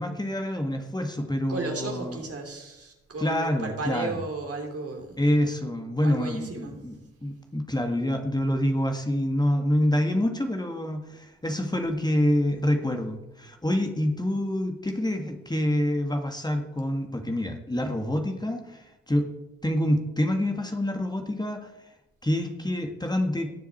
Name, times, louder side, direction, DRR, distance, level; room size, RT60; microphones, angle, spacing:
voice 1, 0.0-2.2 3.2-4.2 5.2-7.0 7.2-19.3 19.6-21.7 22.2-23.5, left 1 dB, 15° left, 4 dB, 2.0 m, -27 dB
voice 2, 1.5-5.2 6.0-6.8, right 3 dB, 50° right, 2 dB, 3.3 m, -34 dB
18.5 x 7.0 x 4.5 m, 0.96 s
hypercardioid pair, 40°, 30 cm